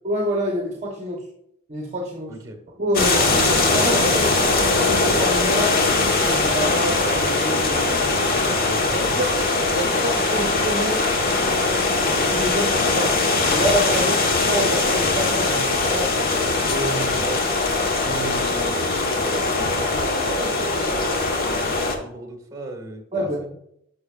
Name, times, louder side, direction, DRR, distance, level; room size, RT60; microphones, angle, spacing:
voice 1, 0.0-1.2 1.7-2.4 2.8-8.1 8.9-9.3 9.7-11.0 11.3-13.2 13.5-16.1 16.6-17.4 18.0-18.9 23.1-23.5, equal, 35° right, -1 dB, 0.9 m, -27 dB
sound 1, 2.9-21.9, left 3 dB, 45° left, 1.2 m, -21 dB
voice 2, 8.2-9.1 17.2-17.4 18.7-23.5, right 2 dB, 20° right, 3 dB, 1.7 m, -36 dB
11.5 x 6.2 x 2.4 m, 0.75 s
head